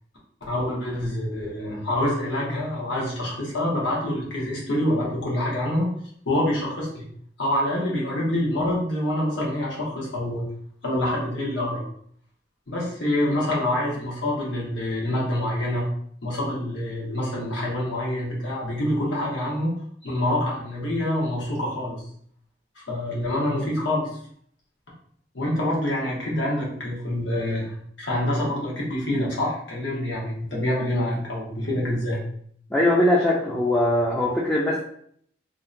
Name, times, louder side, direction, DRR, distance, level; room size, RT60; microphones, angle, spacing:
voice 1, 0.5-5.9 6.2-7.1 7.4-10.5 10.8-11.8 12.7-15.9 16.2-19.7 20.0-22.0 22.8-24.1 25.3-32.2, left 1 dB, 85° left, -4 dB, 1.0 m, -26 dB
voice 2, 32.7-34.8, left 1 dB, 5° left, -6 dB, 0.3 m, -21 dB
2.7 x 2.1 x 2.5 m, 0.62 s
head